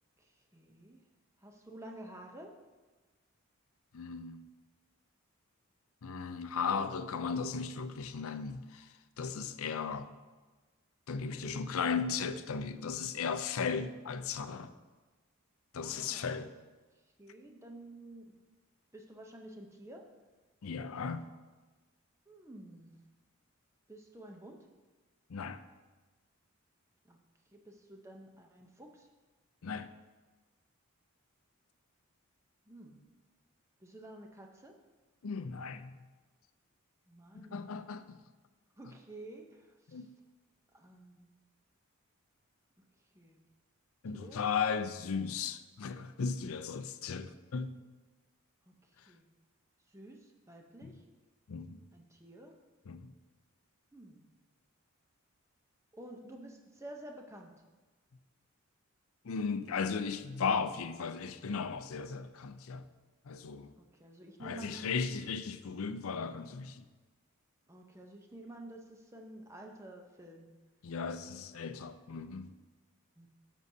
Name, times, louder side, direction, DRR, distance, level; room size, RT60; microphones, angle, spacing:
voice 1, 0.2-1.0 1.4-2.5 11.4-11.9 15.8-16.4 16.9-18.3 18.9-20.1 22.3-22.9 23.9-24.7 27.0-27.2 27.5-29.1 32.7-33.0 33.8-34.7 37.1-37.7 38.8-40.1 40.7-41.3 42.8-42.9 43.1-43.4 44.1-44.4 48.6-49.3 49.9-51.0 51.9-52.5 53.9-54.3 55.9-57.5 63.7-64.9 67.7-70.5 73.2-73.3, right 1 dB, 15° right, 0.7 m, -51 dB
voice 2, 3.9-4.5 6.0-10.1 11.1-14.7 15.7-16.5 20.6-21.3 25.3-25.6 29.6-29.9 35.2-35.9 37.3-38.2 39.9-40.1 44.0-47.7 50.8-50.9 51.5-51.8 52.9-53.1 59.2-62.8 63.3-63.7 64.4-66.8 70.8-72.5, left 5 dB, 70° left, 0.5 m, -36 dB
13.0 x 6.3 x 2.7 m
head